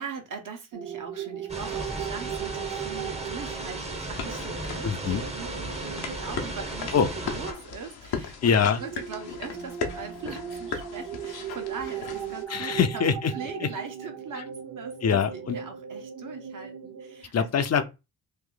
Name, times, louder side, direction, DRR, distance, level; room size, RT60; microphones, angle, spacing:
voice 1, 0.0-13.0 13.3-17.5, right 5 dB, 55° right, 1.2 m, -40 dB
sound 1, 0.7-7.8 8.7-17.2, right 8 dB, 85° right, 1.0 m, -38 dB
sound 2, 1.5-7.5, right 2 dB, 15° right, 0.8 m, -36 dB
sound 3, 4.1-12.4, left 6 dB, 80° left, 0.9 m, -38 dB
voice 2, 4.8-5.2 6.9-7.1 8.4-8.8 12.5-13.3 13.6-13.7 14.3-14.4 15.0-15.6 17.3-17.8, left 7 dB, 45° left, 0.6 m, -24 dB
3.1 x 2.5 x 3.8 m
cardioid pair, 75°, 37 cm